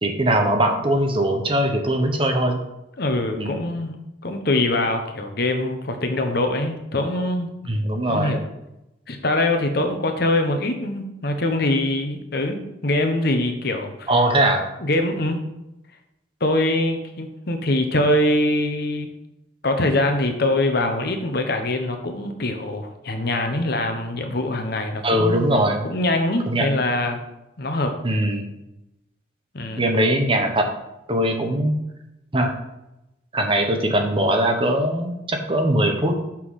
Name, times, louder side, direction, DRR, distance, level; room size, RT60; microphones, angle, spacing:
voice 1, 0.0-2.6 3.4-3.6 7.7-8.4 14.1-14.6 25.0-25.9 26.5-26.7 28.0-28.5 29.8-30.7 31.1-31.7 32.3-32.5 33.3-36.2, right 1 dB, 25° right, 4 dB, 1.0 m, -21 dB
voice 2, 3.0-4.0 4.2-7.5 8.1-8.4 9.1-14.1 14.8-15.4 16.4-19.1 19.6-25.5 25.8-27.2 27.6-27.9 29.5-29.8, left 1 dB, 55° left, 5 dB, 1.1 m, -23 dB
5.9 x 5.9 x 6.4 m, 0.91 s
head